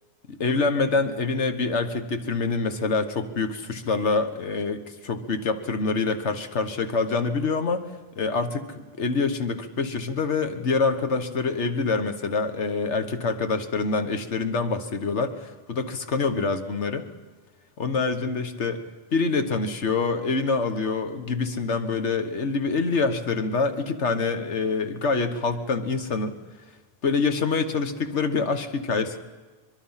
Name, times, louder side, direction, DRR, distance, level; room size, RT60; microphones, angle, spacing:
voice 1, 0.3-7.9 8.1-17.1 17.8-18.8 19.1-26.4 27.0-29.2, left 4 dB, 75° left, 8 dB, 1.6 m, -26 dB
23.5 x 22.0 x 5.7 m, 1.3 s
omnidirectional pair, 1.2 m